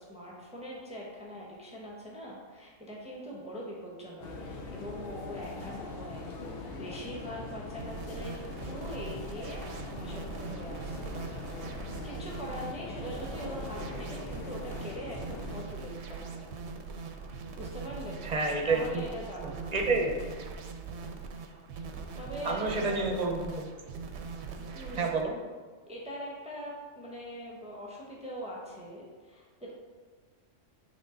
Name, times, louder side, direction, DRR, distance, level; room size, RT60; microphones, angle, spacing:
voice 1, 0.0-11.1 12.0-16.5 17.5-18.2 18.7-19.8 22.2-23.1 24.7-25.1 25.9-29.7, equal, 5° right, -4 dB, 0.9 m, -42 dB
sound 1, 4.2-15.6, left 3 dB, 55° left, 0.9 m, -42 dB
sound 2, 7.8-25.2, right 5 dB, 65° right, 0.9 m, -42 dB
voice 2, 18.2-19.0 19.4-20.2 22.4-23.7 25.0-25.3, right 3 dB, 35° right, 1 dB, 0.9 m, -29 dB
8.3 x 3.6 x 3.8 m, 1.5 s
omnidirectional pair, 1.3 m